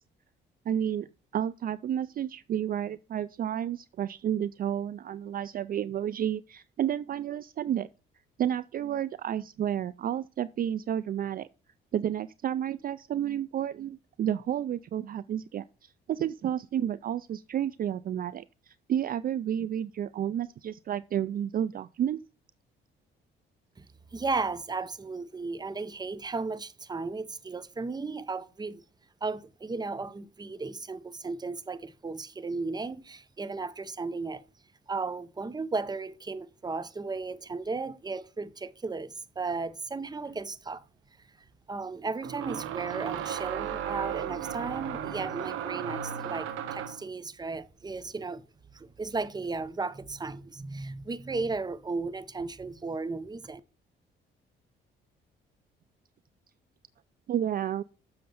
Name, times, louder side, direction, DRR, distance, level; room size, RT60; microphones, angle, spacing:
voice 1, 0.7-1.1 1.3-7.9 8.4-11.5 11.9-22.2 57.3-57.8, right 10 dB, 45° right, 0.4 m, -31 dB
voice 2, 24.1-28.8 29.2-34.4 34.9-40.8 41.7-48.4 48.7-53.6, right 3 dB, 20° right, 0.7 m, -35 dB
sound 1, 40.3-40.4 42.2-47.1, right 9 dB, 90° right, 1.2 m, -35 dB
7.7 x 6.5 x 5.7 m
cardioid pair, 90°, 20 cm